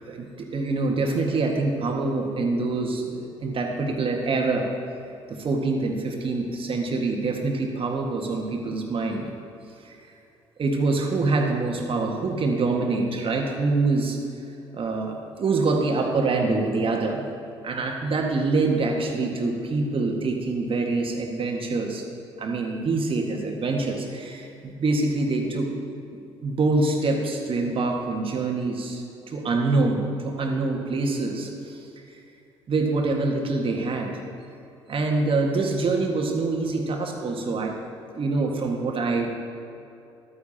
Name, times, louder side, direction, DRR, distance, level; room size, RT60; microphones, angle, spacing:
voice 1, 0.1-4.7 5.3-9.3 9.9-10.0 10.6-14.2 14.7-17.2 17.6-22.0 22.4-25.7 26.4-31.8 32.7-34.2 34.9-37.7 38.2-39.3, right 3 dB, 40° right, 1 dB, 1.7 m, -25 dB
14.5 x 11.5 x 2.9 m, 2.7 s
figure-of-eight pair, 50°, 14 cm